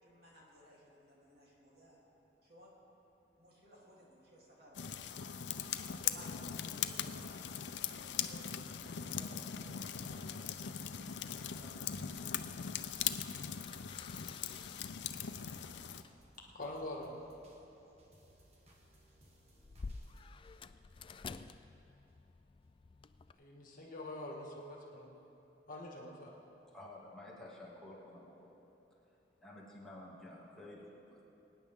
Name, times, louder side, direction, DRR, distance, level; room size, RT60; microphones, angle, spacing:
voice 1, 0.0-2.0 2.4-2.7 3.4-5.4 6.0-12.3, equal, 65° right, -5 dB, 3.3 m, -60 dB
sound 1, 4.7-16.0, left 8 dB, 90° left, 0.5 m, -40 dB
sound 2, 11.6-21.6 22.1-22.2, right 1 dB, 40° right, 1.5 m, -66 dB
sound 3, 12.2-23.3, left 4 dB, 30° left, 0.3 m, -53 dB
voice 2, 16.5-17.2 23.4-25.3 25.7-26.4, left 1 dB, 50° left, -1 dB, 1.8 m, -45 dB
voice 3, 26.7-28.5 29.1-31.2, left 1 dB, 5° left, -6 dB, 2.4 m, -52 dB
23.5 x 9.7 x 3.7 m, 2.9 s
head